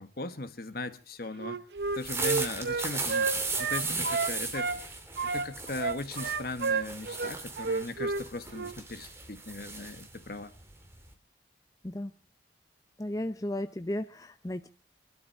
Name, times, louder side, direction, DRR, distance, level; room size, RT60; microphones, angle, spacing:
voice 1, 0.0-1.6 2.0-4.7 5.3-10.5, left 2 dB, 55° left, 1.4 m, -38 dB
Wind instrument woodwind instrument, 1.4-4.8 5.2-8.2 8.5-8.8, right 4 dB, 65° right, 0.9 m, -31 dB
sound 1, 1.8-11.1, right 3 dB, 15° right, 2.5 m, -37 dB
voice 2, 13.0-14.7, left 1 dB, 20° left, 0.7 m, -34 dB
24.0 x 12.5 x 4.6 m
head